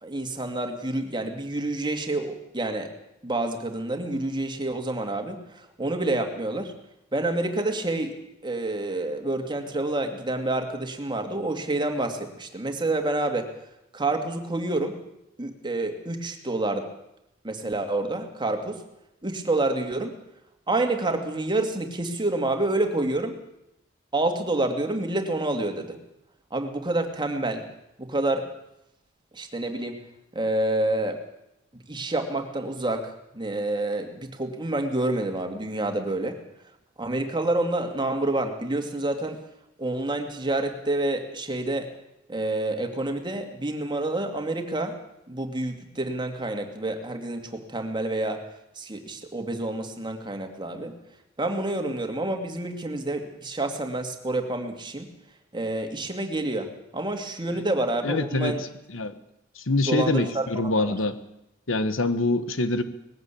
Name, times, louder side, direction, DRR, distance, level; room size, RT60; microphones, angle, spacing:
voice 1, 0.0-2.9 3.2-6.7 7.1-8.2 8.4-13.5 13.9-15.0 15.4-16.9 17.4-18.8 19.2-20.2 20.7-23.4 24.1-26.0 26.5-27.6 28.0-28.5 29.3-30.0 30.3-31.2 31.9-36.4 37.0-39.4 39.8-41.9 42.3-45.0 45.3-48.4 48.8-51.0 51.4-55.1 55.5-58.6 59.9-60.5 60.8-61.0, right 2 dB, 25° right, 5 dB, 2.4 m, -28 dB
voice 2, 58.0-58.5 58.9-59.1 59.6-61.2 61.7-62.8, left 2 dB, 75° left, 11 dB, 1.4 m, -25 dB
20.0 x 15.5 x 8.5 m, 0.84 s
head